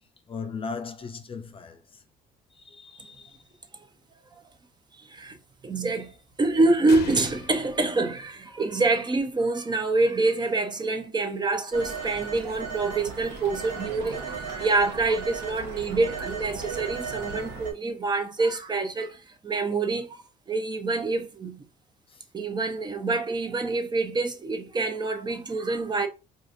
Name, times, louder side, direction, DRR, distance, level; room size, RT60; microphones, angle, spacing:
voice 1, 0.3-2.0 2.5-3.4 22.1-22.2, left 5 dB, 30° left, 0.5 m, -38 dB
voice 2, 5.6-6.1 6.4-21.6 22.3-26.1, right 3 dB, 25° right, 0.6 m, -26 dB
sound 1, 6.9-8.8, left 7 dB, 70° left, 0.7 m, -41 dB
Telephone, 11.7-17.7, right 5 dB, 80° right, 1.2 m, -36 dB
4.7 x 2.5 x 2.6 m
cardioid pair, 110°, 17 cm